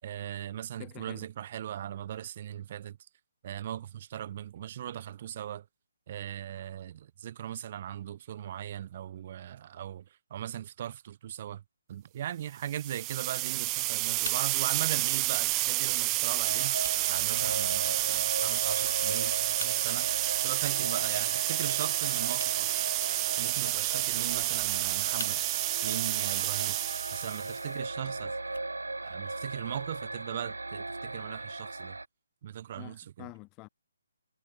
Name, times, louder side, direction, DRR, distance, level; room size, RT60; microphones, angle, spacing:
voice 1, 0.0-3.0 3.4-5.7 6.1-11.6 11.9-22.8 23.4-25.4 25.8-26.8 27.1-28.4 29.0-32.0 32.4-33.3, right 11 dB, 35° right, 3.9 m, -39 dB
voice 2, 0.8-1.3 32.8-33.7, left 25 dB, 20° left, 2.1 m, -47 dB
sound 1, 12.7-27.6, right 24 dB, 20° right, 0.7 m, -30 dB
sound 2, 16.4-32.0, right 2 dB, 70° right, 3.0 m, -37 dB
sound 3, 26.4-29.4, left 4 dB, 60° left, 6.7 m, -52 dB
figure-of-eight pair, 140°, 0 cm